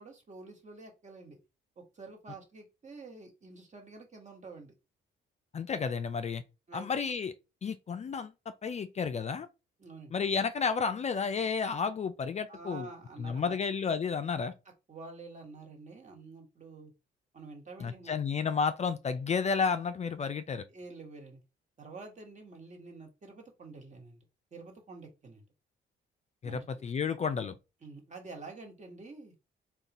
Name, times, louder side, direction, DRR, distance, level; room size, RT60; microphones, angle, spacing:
voice 1, 0.0-1.4 1.8-4.7 6.7-6.9 9.8-10.2 12.5-13.6 14.9-16.9 17.3-18.2 20.7-21.4 21.8-24.2 24.5-25.4 26.4-26.7 27.8-29.3, right 3 dB, 35° right, 1.4 m, -48 dB
voice 2, 5.5-6.4 6.7-7.3 7.6-8.3 8.6-9.5 10.1-12.9 13.2-14.5 17.8-20.6 26.4-27.6, left 5 dB, 35° left, 0.4 m, -31 dB
3.7 x 2.4 x 4.0 m
cardioid pair, 90°, 20 cm